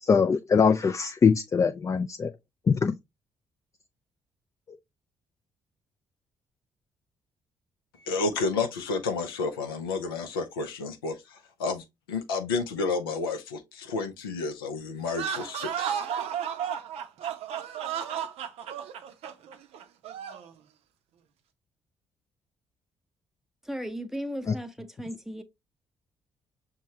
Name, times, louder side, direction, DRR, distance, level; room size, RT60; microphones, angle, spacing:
voice 1, 0.0-2.3 2.7-3.0 24.5-24.6, left 5 dB, 25° left, 0.3 m, -22 dB
voice 2, 8.0-16.0, left 4 dB, 85° left, 0.5 m, -31 dB
sound 1, 15.1-20.5, right 9 dB, 65° right, 0.5 m, -33 dB
voice 3, 23.6-25.4, equal, 5° right, 0.7 m, -36 dB
6.2 x 2.2 x 2.8 m
hypercardioid pair, 45°, 12 cm